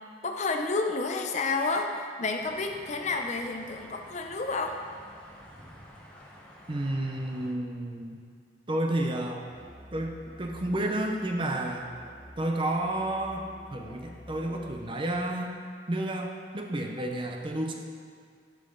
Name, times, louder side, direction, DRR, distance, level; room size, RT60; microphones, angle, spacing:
voice 1, 0.2-4.8, left 3 dB, 40° left, 4 dB, 0.6 m, -30 dB
sound 1, 2.4-7.5, equal, 5° left, 1.1 m, -50 dB
voice 2, 6.7-8.2 8.7-9.5 9.9-11.9 12.4-15.5 15.9-17.7, right 1 dB, 25° right, 2 dB, 0.6 m, -31 dB
Musical instrument, 9.5-15.1, equal, 25° left, 1.9 m, -50 dB
11.0 x 5.7 x 3.8 m, 2.1 s
head